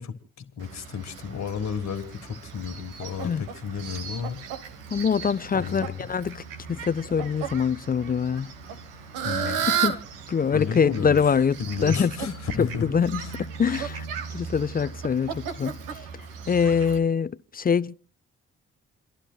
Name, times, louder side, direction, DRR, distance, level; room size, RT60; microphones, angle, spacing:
voice 1, 0.0-4.4 5.5-6.0 9.2-9.6 10.5-11.2 11.6-12.9 13.2-13.3, left 6 dB, 60° left, 1.8 m, -32 dB
Fowl, 0.6-17.0, right 7 dB, 85° right, 1.3 m, -35 dB
voice 2, 4.9-6.4 6.7-8.5 9.5-10.0 10.3-11.5 11.8-12.3 12.6-15.8 16.5-17.9, left 6 dB, 30° left, 0.6 m, -24 dB
29.0 x 11.5 x 2.3 m
hypercardioid pair, 45°, 31 cm